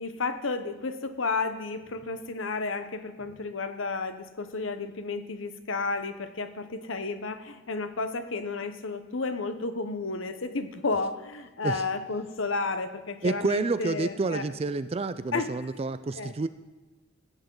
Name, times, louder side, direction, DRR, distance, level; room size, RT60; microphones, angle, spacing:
voice 1, 0.0-14.4 15.3-15.5 16.1-16.3, left 3 dB, 65° left, 10 dB, 0.9 m, -32 dB
voice 2, 13.2-16.5, right 3 dB, 30° right, 13 dB, 0.3 m, -29 dB
16.0 x 9.2 x 3.9 m, 1.3 s
head